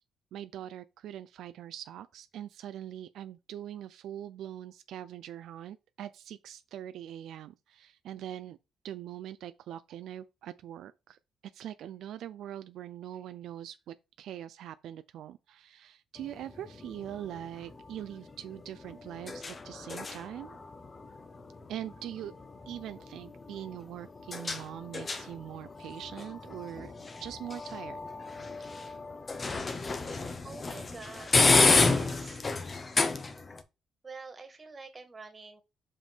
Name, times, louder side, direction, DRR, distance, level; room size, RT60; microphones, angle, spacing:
voice 1, 0.3-8.6 8.8-11.2 11.5-20.6 21.7-26.9 27.2-28.0, right 11 dB, 80° right, 0.4 m, -42 dB
sound 1, 16.2-33.6, left 3 dB, 30° left, 0.9 m, -32 dB
voice 2, 30.4-31.5 31.8-32.4 34.0-35.6, right 4 dB, 30° right, 1.7 m, -46 dB
5.7 x 5.0 x 3.5 m
cardioid pair, 90°, 0 cm